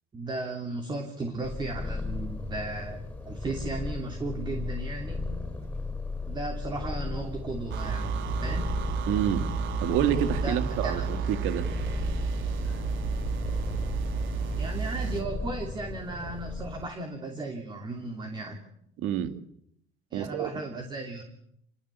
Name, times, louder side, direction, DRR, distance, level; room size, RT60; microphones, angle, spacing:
voice 1, 0.1-3.0 3.2-5.3 6.3-8.1 8.4-8.8 10.4-11.0 14.6-18.6 20.1-21.2, right 2 dB, 20° right, 3.0 m, -35 dB
Purr, 1.4-16.8, left 3 dB, 5° left, 5.1 m, -36 dB
sound 1, 7.7-15.3, right 5 dB, 65° right, 3.5 m, -31 dB
voice 2, 9.1-11.7 19.0-19.4 20.1-20.5, right 10 dB, 80° right, 2.2 m, -28 dB
28.5 x 22.0 x 8.4 m
cardioid pair, 175°, 21 cm